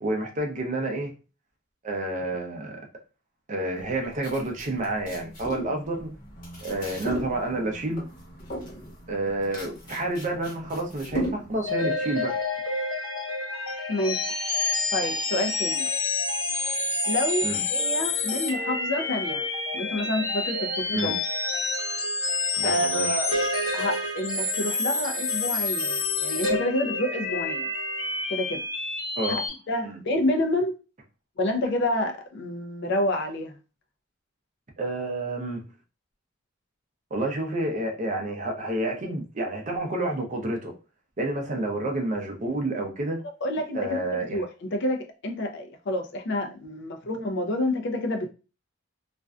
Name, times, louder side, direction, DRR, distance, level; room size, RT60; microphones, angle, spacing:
voice 1, 0.0-1.1 1.8-2.8 3.5-6.1 6.6-8.0 9.1-12.3 17.4-17.6 20.9-21.1 22.6-23.2 29.2-29.4 29.8-30.0 34.8-35.6 37.1-40.7 41.2-43.2 43.7-44.4, right 2 dB, 35° right, 0.5 m, -29 dB
sound 1, 3.8-11.7, right 1 dB, 40° left, 0.9 m, -37 dB
sound 2, 11.6-29.5, left 3 dB, 75° left, 1.0 m, -28 dB
voice 2, 13.9-14.3 14.9-15.9 17.1-19.4 19.7-21.1 22.6-23.3 23.7-27.7 28.3-28.6 29.3-30.8 31.4-33.5 43.4-48.3, left 1 dB, 55° left, 0.4 m, -28 dB
2.4 x 2.1 x 2.3 m
head